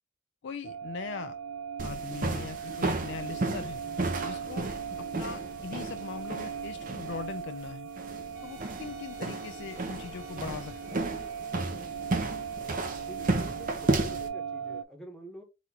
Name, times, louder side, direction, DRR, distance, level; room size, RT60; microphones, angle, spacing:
voice 1, 0.4-1.4 1.8-3.8 4.2-4.7 5.0-7.9 8.4-11.0, left 5 dB, 65° left, 0.4 m, -40 dB
sound 1, 0.6-14.8, right 7 dB, 75° right, 0.4 m, -39 dB
sound 2, 1.8-14.3, right 2 dB, 45° right, 0.7 m, -34 dB
Wind instrument woodwind instrument, 8.3-14.0, equal, 15° right, 1.3 m, -53 dB
voice 2, 12.9-15.4, right 1 dB, 5° left, 1.0 m, -48 dB
4.1 x 2.5 x 4.1 m
head